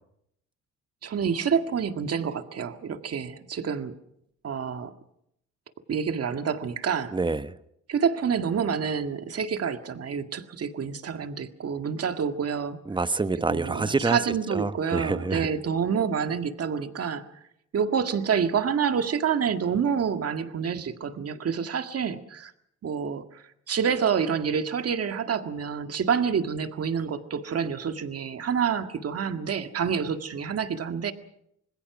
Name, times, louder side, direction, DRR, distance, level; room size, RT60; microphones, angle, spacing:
voice 1, 1.0-3.9 4.4-4.9 5.9-7.1 7.9-12.8 13.5-17.3 17.7-22.5 22.8-31.1, right 7 dB, 50° right, 8 dB, 1.9 m, -28 dB
voice 2, 7.1-7.5 12.9-14.2 14.5-15.5, right 3 dB, 15° right, 13 dB, 1.0 m, -27 dB
26.0 x 20.0 x 6.1 m, 0.75 s
cardioid pair, 90°, 30 cm